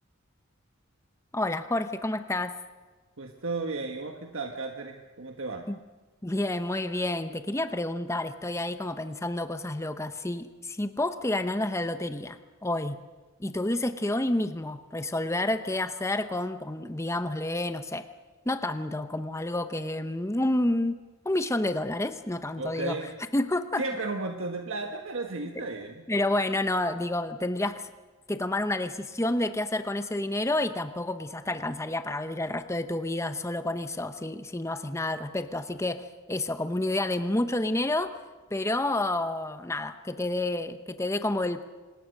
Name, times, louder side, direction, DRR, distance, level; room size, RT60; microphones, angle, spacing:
voice 1, 1.3-2.6 5.7-5.8 6.2-13.0 13.4-18.0 18.5-21.0 21.2-23.0 23.3-23.8 26.1-27.8 28.3-38.2 38.5-41.6, left 1 dB, 15° left, 9 dB, 0.8 m, -29 dB
voice 2, 3.2-5.7 22.6-23.1 23.8-26.0, right 3 dB, 70° right, 3 dB, 1.5 m, -34 dB
26.0 x 20.0 x 6.6 m, 1.2 s
head